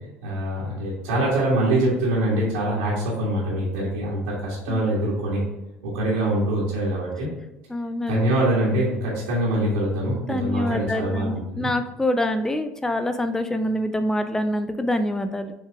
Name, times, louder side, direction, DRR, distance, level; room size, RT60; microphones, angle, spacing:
voice 1, 0.2-5.4 5.8-7.3 8.1-11.7, right 1 dB, 70° right, -7 dB, 1.8 m, -24 dB
voice 2, 7.7-8.2 10.3-15.5, left 1 dB, 5° left, 9 dB, 0.4 m, -25 dB
6.8 x 4.0 x 3.5 m, 0.99 s
figure-of-eight pair, 70°, 7 cm